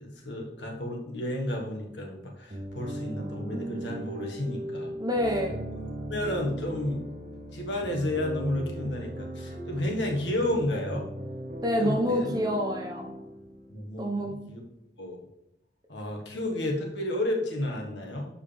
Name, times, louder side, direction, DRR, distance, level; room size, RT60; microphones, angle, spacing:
voice 1, 0.0-4.9 6.0-7.0 7.5-11.1 11.8-12.3 13.7-14.6 15.0-15.2 15.9-18.3, left 1 dB, 80° left, 0 dB, 1.7 m, -31 dB
sound 1, 2.5-14.2, right 1 dB, 45° right, 1.0 m, -38 dB
voice 2, 5.0-5.5 11.6-13.1 14.0-14.3, equal, 20° right, 1 dB, 1.2 m, -27 dB
13.0 x 4.9 x 3.5 m, 0.83 s
head